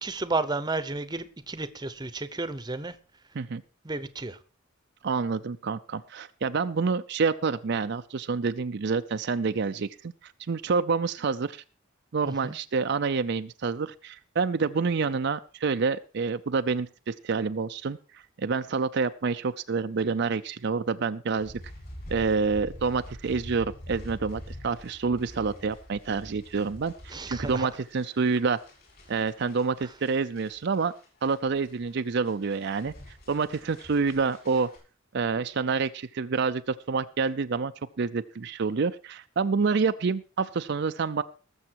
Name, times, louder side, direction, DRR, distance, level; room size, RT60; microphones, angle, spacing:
voice 1, 0.0-3.0 3.8-4.4 12.3-12.6 27.1-27.7, right 3 dB, 20° right, 0.8 m, -32 dB
voice 2, 5.0-11.6 12.1-21.5 22.1-28.6 29.1-30.9 31.2-32.9 33.3-34.7 35.1-41.2, right 4 dB, 60° right, 0.5 m, -28 dB
sound 1, 21.4-34.8, equal, 50° left, 6.9 m, -45 dB
19.0 x 7.1 x 4.6 m
head